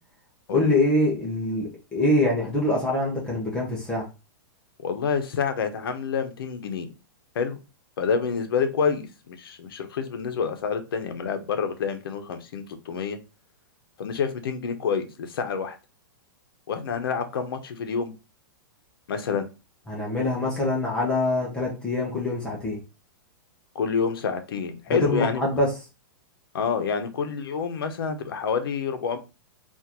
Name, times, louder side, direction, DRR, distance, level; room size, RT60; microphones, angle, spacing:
voice 1, 0.5-4.1 19.9-22.8 24.9-25.7, left 2 dB, 5° left, -3 dB, 0.6 m, -24 dB
voice 2, 4.8-6.9 7.3-7.6 8.0-13.2 14.0-15.8 16.7-18.1 19.1-19.5 23.7-25.4 26.5-29.2, left 6 dB, 80° left, 8 dB, 0.7 m, -28 dB
3.6 x 2.5 x 2.9 m, 0.29 s
supercardioid pair, 180°, 12 cm